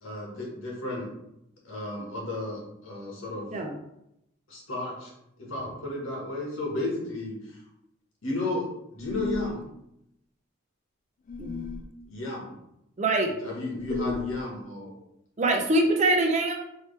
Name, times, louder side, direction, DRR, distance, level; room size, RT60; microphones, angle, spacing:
voice 1, 0.0-1.1 1.6-3.5 4.5-5.1 5.4-7.6 8.2-9.6 12.1-12.5 13.4-14.9, left 1 dB, 75° left, -3 dB, 1.5 m, -33 dB
sound 1, 9.0-9.6 11.3-11.9 13.7-14.4, left 6 dB, 40° left, 0.3 m, -34 dB
voice 2, 13.0-13.3 15.4-16.5, right 2 dB, 35° right, 2 dB, 0.5 m, -24 dB
4.5 x 3.1 x 3.3 m, 0.81 s
head